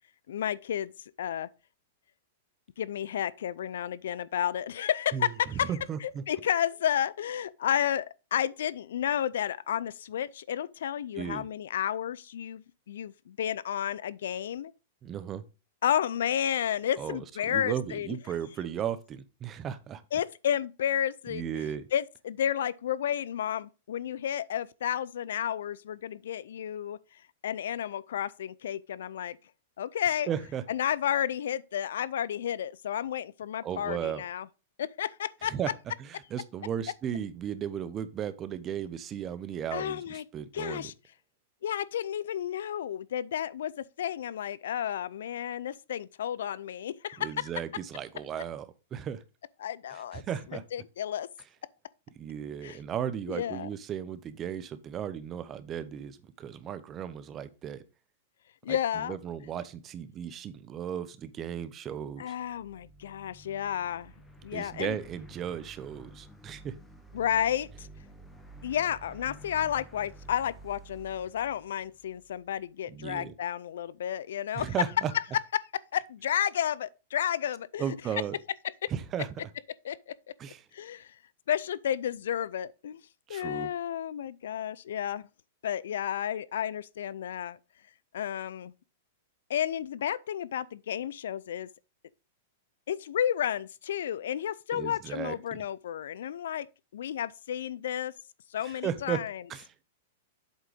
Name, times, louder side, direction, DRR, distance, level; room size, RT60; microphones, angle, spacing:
voice 1, 0.3-0.9 1.2-1.5 2.8-5.7 6.0-14.7 15.8-18.1 20.1-27.0 27.4-29.4 29.8-30.3 30.7-34.5 34.8-35.5 39.7-40.2 40.5-40.9 41.6-47.5 49.6-50.2 50.7-51.3 52.6-52.8 53.3-53.7 58.6-59.2 62.2-64.1 64.4-65.0 67.1-67.9 68.6-74.7 75.5-77.8 78.8-78.9 79.8-80.1 80.7-81.1 81.5-83.0 83.3-85.2 85.6-87.6 88.1-88.7 89.5-91.7 92.9-96.7 96.9-98.1 98.5-99.4, left 10 dB, 75° left, 0.4 m, -32 dB
voice 2, 5.1-6.2 11.1-11.5 15.0-15.4 17.0-20.0 21.3-21.9 30.3-30.6 33.6-34.2 35.4-35.7 36.0-40.9 47.2-48.7 48.9-49.2 49.9-50.6 52.2-57.8 58.7-62.3 64.5-66.7 72.9-73.3 74.5-75.1 77.8-78.4 78.9-79.5 80.4-80.6 83.3-83.7 94.7-95.6 98.6-99.2 99.5-99.7, right 9 dB, 25° right, 0.7 m, -35 dB
sound 1, 62.3-72.6, right 2 dB, 5° left, 1.2 m, -51 dB
8.1 x 3.8 x 4.9 m
hypercardioid pair, 135°, 0 cm